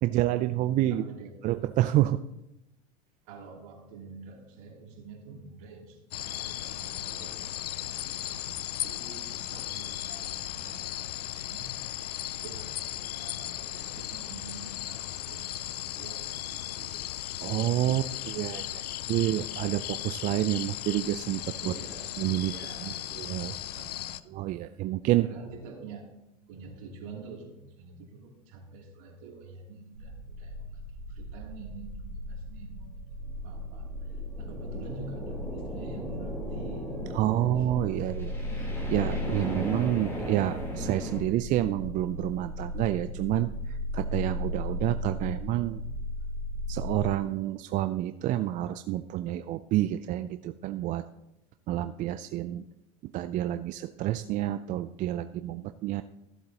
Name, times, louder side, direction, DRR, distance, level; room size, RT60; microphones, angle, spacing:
voice 1, 0.0-1.0 1.4-2.2 17.4-21.7 22.2-22.5 22.8-23.5 24.3-25.3 37.1-45.8 46.7-51.0 51.7-52.6 53.0-56.0, right 14 dB, 40° right, 11 dB, 0.4 m, -29 dB
voice 2, 0.9-1.3 3.2-11.8 12.3-17.1 18.8-19.3 21.6-23.2 23.7-24.3 25.1-26.1 26.5-30.8 31.1-32.9 33.4-33.9 34.4-37.1 37.6-37.7 38.0-38.1, right 4 dB, 65° right, -1 dB, 3.1 m, -47 dB
sound 1, 6.1-24.2, left 13 dB, 85° left, 0.5 m, -36 dB
sound 2, 30.0-47.1, left 1 dB, 90° right, 1.4 m, -37 dB
sound 3, 33.5-41.2, equal, 10° left, 3.5 m, -37 dB
14.5 x 8.0 x 2.9 m, 0.89 s
hypercardioid pair, 100°, 20 cm